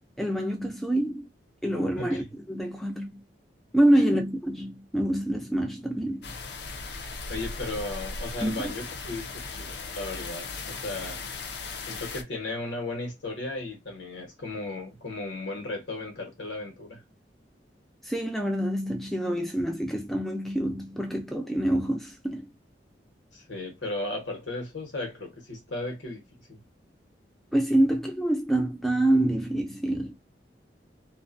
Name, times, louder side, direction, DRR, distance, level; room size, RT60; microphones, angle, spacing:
voice 1, 0.2-1.3 1.6-3.2 3.7-6.3 8.4-8.7 18.0-22.5 27.5-30.1, right 1 dB, ahead, 0.4 m, -26 dB
sound 1, 6.2-12.2, left 3 dB, 65° left, 0.4 m, -37 dB
voice 2, 7.3-11.2 11.9-17.0 23.3-26.6, left 2 dB, 90° left, 1.1 m, -35 dB
2.4 x 2.1 x 2.5 m
head